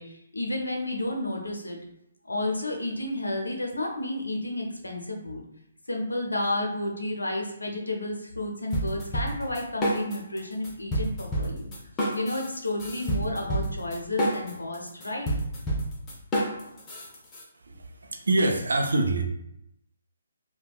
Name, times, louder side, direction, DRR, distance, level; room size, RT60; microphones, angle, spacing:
voice 1, 0.0-1.8 2.2-5.4 5.9-11.7 12.1-15.3, left 1 dB, 80° left, 1 dB, 0.6 m, -31 dB
sound 1, 8.7-10.4 10.6-17.4, right 1 dB, 20° left, 0.7 m, -29 dB
voice 2, 17.6-19.2, right 2 dB, 70° right, 3 dB, 0.4 m, -25 dB
3.3 x 2.2 x 2.3 m, 0.79 s
figure-of-eight pair, 135°, 0 cm